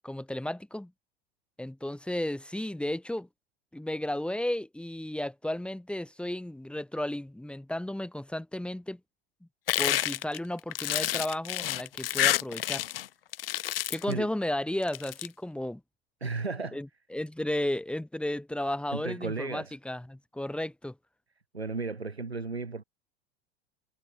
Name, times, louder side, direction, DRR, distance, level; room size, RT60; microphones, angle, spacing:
voice 1, 0.0-0.9 1.6-3.3 3.7-9.0 9.4-9.5 9.8-12.9 13.9-15.8 16.7-21.0, left 1 dB, 5° left, 4.1 m, -33 dB
sound 1, 9.7-13.1 13.3-14.1 14.8-15.3, left 13 dB, 65° left, 1.4 m, -29 dB
voice 2, 16.2-16.8 18.9-19.8 21.5-22.8, right 4 dB, 85° right, 4.7 m, -34 dB
figure-of-eight pair, 75°, 31 cm